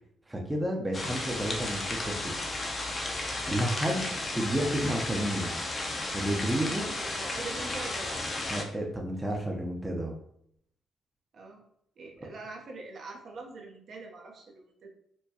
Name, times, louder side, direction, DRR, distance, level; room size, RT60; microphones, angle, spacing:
voice 1, 0.3-2.3 3.5-4.1 4.3-5.5 6.1-6.8 8.5-10.1, right 1 dB, 15° right, 0 dB, 0.6 m, -31 dB
sound 1, 0.9-8.6, left 2 dB, 35° left, 0.7 m, -34 dB
voice 2, 6.6-8.2 11.3-11.6 12.0-14.9, right 3 dB, 55° right, 1 dB, 0.7 m, -43 dB
4.5 x 2.2 x 2.7 m, 0.72 s
cardioid pair, 90°, 0 cm